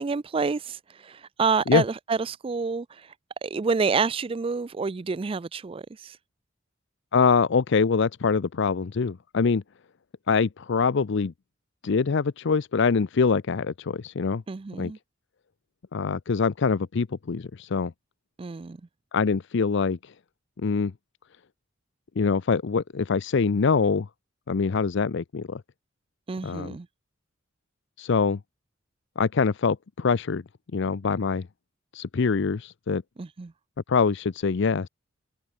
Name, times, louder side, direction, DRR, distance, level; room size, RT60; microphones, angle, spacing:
voice 1, 0.0-3.1 3.4-6.2 14.5-15.0 18.4-18.8 26.3-26.9 33.2-33.5, right 5 dB, 25° right, 0.4 m, -28 dB
voice 2, 7.1-9.6 10.3-11.3 11.8-14.4 14.8-14.9 15.9-17.9 19.1-20.1 20.6-20.9 22.2-24.1 24.5-25.6 26.4-26.8 28.0-28.4 29.2-30.4 30.7-31.5 31.9-33.0 33.9-34.9, left 5 dB, 60° left, 0.5 m, -24 dB
head